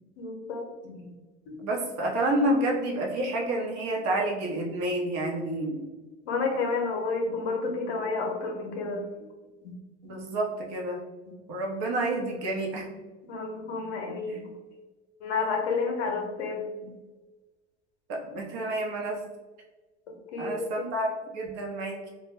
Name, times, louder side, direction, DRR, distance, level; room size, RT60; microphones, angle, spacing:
voice 1, 0.2-0.9 1.5-1.6 6.3-9.1 9.6-9.7 13.3-14.5 15.2-16.9 20.1-20.9, left 4 dB, 80° left, 2 dB, 0.7 m, -31 dB
voice 2, 1.6-5.8 10.0-11.0 11.5-12.9 14.3-14.4 18.1-19.2 20.4-22.1, right 1 dB, 50° right, 0 dB, 0.8 m, -29 dB
2.2 x 2.1 x 3.3 m, 1.2 s
hypercardioid pair, 75°, 34 cm